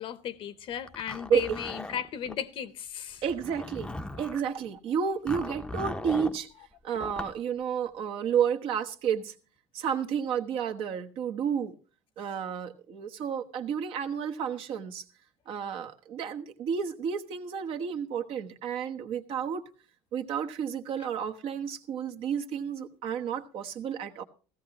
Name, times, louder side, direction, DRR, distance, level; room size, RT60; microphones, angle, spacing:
voice 1, 0.0-3.2, left 9 dB, 55° left, 0.9 m, -36 dB
Zipper (clothing), 0.9-2.4 3.2-4.5 5.3-6.4 7.0-7.4, left 1 dB, 10° left, 0.7 m, -38 dB
voice 2, 1.3-1.6 3.2-3.9 4.2-6.5 6.8-9.3 9.7-11.8 12.2-15.0 15.5-19.6 20.1-24.2, right 7 dB, 65° right, 1.1 m, -31 dB
16.0 x 14.0 x 2.9 m
supercardioid pair, 105°, 10 cm